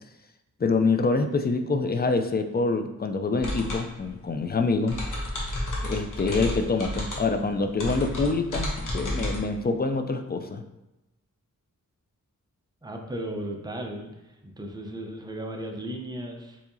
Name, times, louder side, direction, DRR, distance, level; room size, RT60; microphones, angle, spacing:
voice 1, 0.6-5.0 5.8-10.6, left 3 dB, 30° left, 7 dB, 0.4 m, -26 dB
sound 1, 3.4-9.4, left 1 dB, 70° left, 1.0 m, -32 dB
voice 2, 12.8-16.6, right 1 dB, 10° right, 2 dB, 0.6 m, -36 dB
4.6 x 2.8 x 2.7 m, 0.96 s
wide cardioid pair, 60°, 33 cm